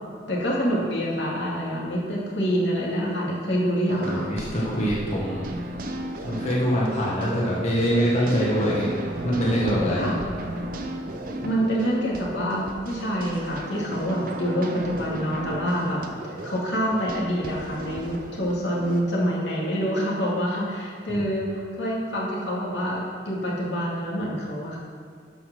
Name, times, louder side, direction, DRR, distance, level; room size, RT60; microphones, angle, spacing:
voice 1, 0.3-4.2 10.0-10.1 11.4-16.0 16.4-24.8, equal, 75° left, -4 dB, 2.3 m, -26 dB
voice 2, 3.9-5.5 6.2-8.9 9.2-10.1 21.1-21.2, equal, 40° left, -6 dB, 1.4 m, -24 dB
sound 1, 3.9-19.0, right 1 dB, 50° right, 0.8 m, -35 dB
12.0 x 4.9 x 6.1 m, 2.1 s
head